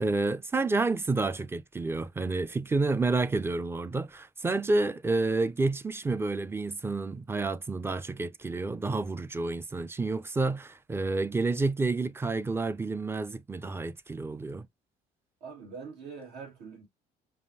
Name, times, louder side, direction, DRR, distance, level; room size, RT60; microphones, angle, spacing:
voice 1, 0.0-14.7, right 3 dB, 15° right, 0.4 m, -29 dB
voice 2, 15.4-16.9, right 5 dB, 85° right, 2.0 m, -43 dB
5.4 x 2.6 x 2.7 m
cardioid pair, 110°, 17 cm